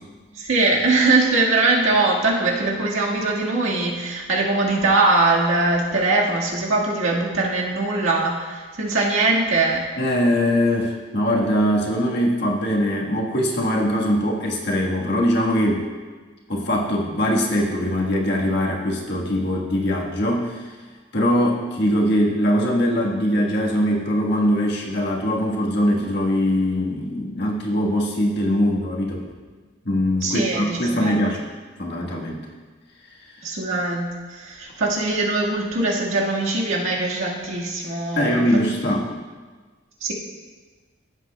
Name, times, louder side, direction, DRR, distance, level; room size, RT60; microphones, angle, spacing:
voice 1, 0.3-9.8 30.2-31.3 33.4-38.5 38.8-38.9 40.0-40.1, right 3 dB, 80° right, -3 dB, 1.7 m, -21 dB
voice 2, 10.0-15.9 16.5-20.7 21.1-29.2 29.8-31.4 31.8-32.5 33.3-33.6 38.2-39.1, equal, 50° left, -1 dB, 1.4 m, -22 dB
16.0 x 7.8 x 2.3 m, 1.4 s
head